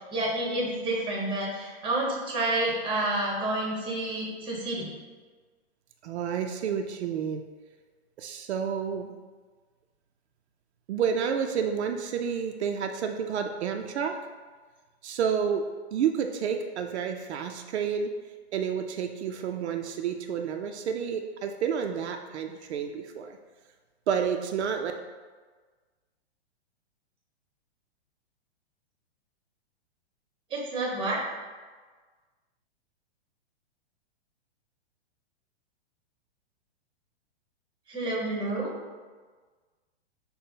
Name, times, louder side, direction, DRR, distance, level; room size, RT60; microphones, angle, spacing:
voice 1, 0.1-4.9 30.5-31.2 37.9-38.7, right 2 dB, 15° right, -3 dB, 1.0 m, -29 dB
voice 2, 6.0-7.4 8.2-9.1 10.9-14.2 15.0-15.7 15.9-18.1 18.5-23.4 24.1-24.9, right 7 dB, 80° right, 4 dB, 0.5 m, -30 dB
5.6 x 2.2 x 3.6 m, 1.4 s
hypercardioid pair, 135°, 33 cm